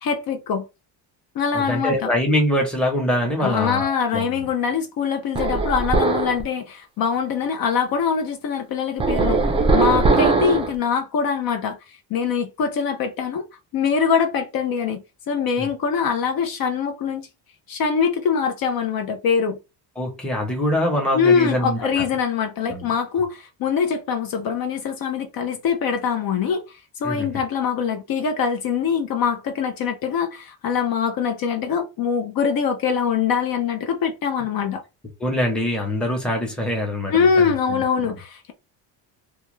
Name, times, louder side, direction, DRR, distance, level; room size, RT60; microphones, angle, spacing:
voice 1, 0.0-0.7 1.4-2.1 3.4-9.5 9.7-13.4 13.7-17.3 17.7-19.6 21.1-26.6 27.0-34.8 37.1-38.5, left 6 dB, 55° left, 0.6 m, -23 dB
voice 2, 1.5-4.5 9.6-10.1 15.6-15.7 20.0-22.1 22.7-22.9 27.0-27.3 35.2-37.8, equal, ahead, 0.8 m, -24 dB
sound 1, 5.3-6.4 9.0-10.7, right 3 dB, 15° right, 0.4 m, -19 dB
2.4 x 2.3 x 3.0 m
cardioid pair, 130°, 43 cm